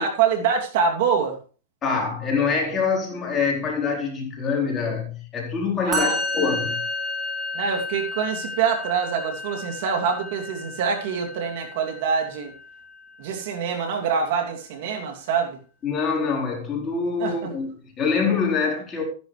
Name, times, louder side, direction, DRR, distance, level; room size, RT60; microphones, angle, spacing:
voice 1, 0.0-1.4 5.8-6.2 7.5-12.5 13.2-15.6 17.2-17.5, right 6 dB, 60° right, 2.8 m, -25 dB
voice 2, 1.8-6.8 15.8-19.0, left 5 dB, 25° left, 4.1 m, -25 dB
Musical instrument, 5.9-13.2, left 2 dB, 15° right, 3.4 m, -32 dB
13.0 x 11.0 x 3.3 m
hypercardioid pair, 135°, 0 cm